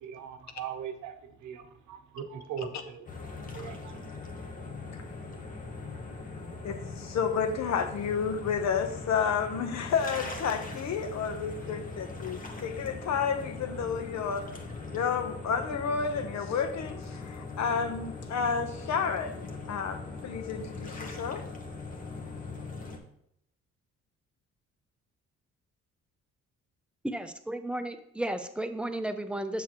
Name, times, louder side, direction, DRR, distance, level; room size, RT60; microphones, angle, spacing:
voice 1, 0.0-4.0 5.9-6.0 6.4-6.5, right 8 dB, 80° right, 8 dB, 0.8 m, -41 dB
sound 1, 3.1-23.0, left 3 dB, 25° left, 1.2 m, -41 dB
voice 2, 6.6-14.4 14.9-21.4, left 6 dB, 65° left, 8 dB, 0.9 m, -31 dB
voice 3, 27.0-29.6, right 1 dB, 5° right, 8 dB, 0.6 m, -33 dB
7.2 x 5.9 x 3.0 m, 0.74 s
cardioid pair, 90°, 30 cm